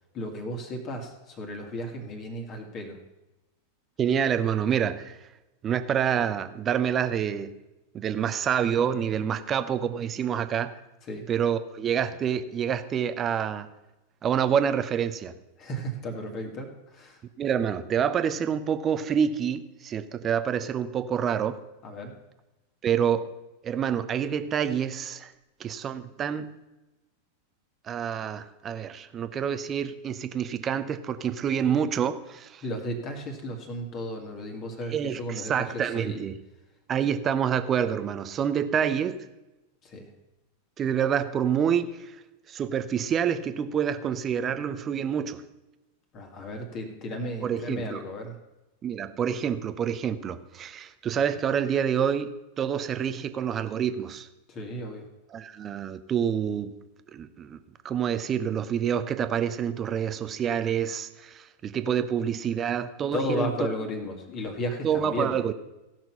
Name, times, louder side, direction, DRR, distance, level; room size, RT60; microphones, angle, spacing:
voice 1, 0.1-3.0 11.1-11.3 15.6-17.2 21.8-22.1 32.6-36.2 39.8-40.1 46.1-48.3 54.5-55.1 63.1-65.4, equal, 35° left, 3 dB, 2.0 m, -34 dB
voice 2, 4.0-5.2 5.6-7.5 7.9-10.8 11.3-13.7 14.2-15.3 17.4-21.6 22.8-23.3 23.6-25.3 25.6-26.6 27.8-32.6 34.9-36.4 36.9-39.2 40.8-42.2 42.5-45.4 47.4-48.0 48.8-54.3 55.3-56.7 57.1-57.6 57.8-63.5 64.8-65.5, right 8 dB, 25° right, 12 dB, 0.7 m, -27 dB
16.0 x 6.0 x 5.6 m, 1.0 s
figure-of-eight pair, 90°, 0 cm